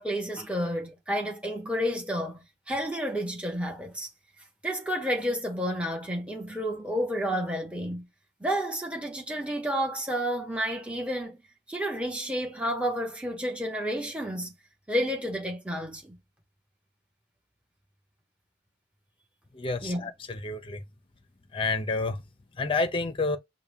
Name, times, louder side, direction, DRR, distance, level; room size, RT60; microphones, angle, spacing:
voice 1, 0.0-4.1 4.6-8.0 8.4-11.4 11.7-14.5 14.9-16.2 19.8-20.1, equal, 5° right, 1.1 m, -30 dB
voice 2, 19.5-20.8 21.5-22.2 22.6-23.4, left 3 dB, 30° left, 0.6 m, -29 dB
5.6 x 2.2 x 3.5 m
head